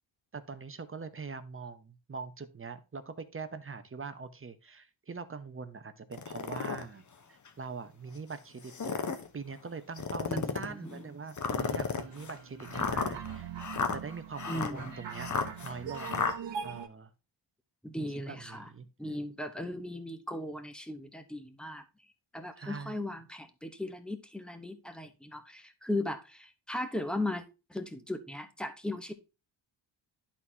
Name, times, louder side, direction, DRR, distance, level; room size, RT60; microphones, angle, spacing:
voice 1, 0.3-9.0 9.3-13.5 13.9-15.4 15.6-16.3 16.6-17.1 18.1-18.9 22.6-23.0, right 5 dB, 25° right, 0.8 m, -43 dB
sound 1, 6.1-6.8 7.5-7.6 8.6-9.3 10.0-10.7 11.4-16.3, left 5 dB, 40° left, 1.0 m, -33 dB
voice 2, 10.3-11.0 14.5-15.0 17.8-18.7 19.0-21.8 22.3-27.4 27.7-29.1, left 1 dB, ahead, 1.0 m, -37 dB
sound 2, 11.5-16.9, right 8 dB, 65° right, 1.2 m, -42 dB
11.5 x 4.2 x 2.8 m
cardioid pair, 105°, 47 cm